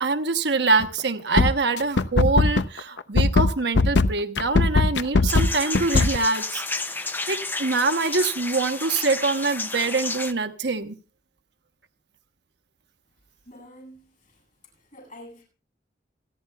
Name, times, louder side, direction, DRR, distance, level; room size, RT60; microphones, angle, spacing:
voice 1, 0.0-6.6 6.9-11.0, right 3 dB, 75° right, 1.1 m, -24 dB
sound 1, 0.8-1.0 1.4-6.2, left 3 dB, 75° left, 0.7 m, -19 dB
sound 2, 5.3-10.3, left 3 dB, 10° left, 0.6 m, -31 dB
voice 2, 13.4-14.4 14.7-15.4, left 1 dB, 45° left, 7.9 m, -47 dB
28.5 x 10.0 x 2.3 m
head